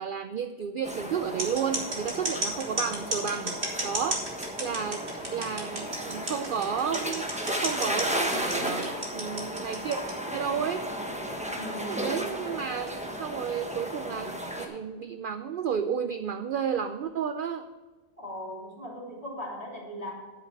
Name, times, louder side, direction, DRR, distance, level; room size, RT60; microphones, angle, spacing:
voice 1, 0.0-4.2 4.6-5.1 5.3-7.3 7.6-10.0 10.3-10.9 11.9-17.7, right 7 dB, 70° right, 9 dB, 0.5 m, -32 dB
sound 1, 0.8-14.7, equal, 5° right, 1.0 m, -34 dB
sound 2, 1.4-10.1, right 1 dB, 40° right, 2.1 m, -32 dB
voice 2, 11.5-12.2 18.2-20.1, equal, 25° left, -3 dB, 2.7 m, -39 dB
9.6 x 8.6 x 4.6 m, 1.4 s
omnidirectional pair, 1.4 m